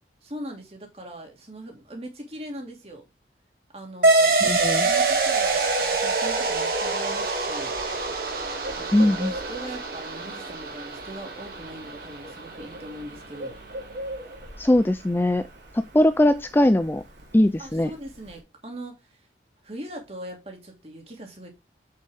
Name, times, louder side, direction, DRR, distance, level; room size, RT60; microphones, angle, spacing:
voice 1, 0.2-3.0 3.7-7.8 8.8-13.6 17.6-19.2 19.6-21.5, right 1 dB, 35° right, 2.7 m, -40 dB
sound 1, 4.0-13.1, right 3 dB, 50° right, 2.4 m, -25 dB
voice 2, 4.4-4.9 8.9-9.3 14.6-15.4 15.7-17.0 17.3-17.9, left 1 dB, 10° left, 0.4 m, -20 dB
Bird, 4.4-18.4, equal, 90° right, 3.2 m, -43 dB
7.7 x 6.8 x 3.5 m
head